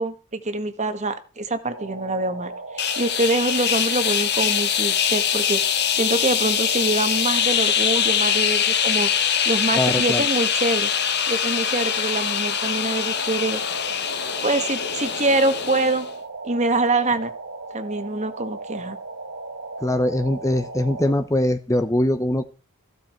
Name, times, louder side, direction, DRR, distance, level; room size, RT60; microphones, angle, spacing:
voice 1, 0.0-10.9 11.3-13.6 14.4-16.1 16.4-17.3 17.7-19.0, right 2 dB, 30° right, 1.7 m, -25 dB
sound 1, 1.7-21.1, right 3 dB, 65° right, 3.6 m, -37 dB
sound 2, 2.8-16.1, left 8 dB, 50° left, 1.4 m, -23 dB
voice 2, 9.8-10.2 19.8-22.4, left 1 dB, 15° left, 0.9 m, -22 dB
15.0 x 12.0 x 4.6 m
head